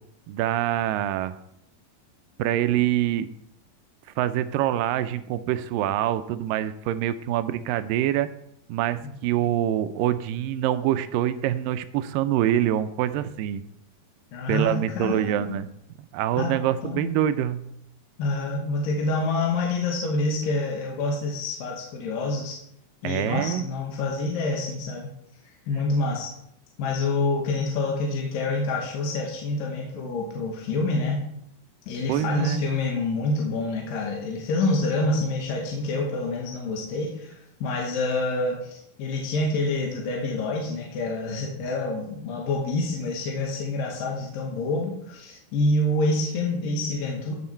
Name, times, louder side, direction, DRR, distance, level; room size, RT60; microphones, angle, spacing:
voice 1, 0.3-1.4 2.4-3.3 4.2-8.3 8.7-13.6 14.5-15.7 16.1-17.6 23.0-23.7 32.1-32.7, right 12 dB, 80° right, 12 dB, 2.1 m, -25 dB
voice 2, 14.3-15.6 16.4-16.5 16.8-17.2 18.2-22.6 23.0-25.1 25.7-26.3 26.8-31.2 31.9-47.3, left 2 dB, 75° left, -1 dB, 2.9 m, -27 dB
14.5 x 6.3 x 4.4 m, 0.77 s
omnidirectional pair, 4.2 m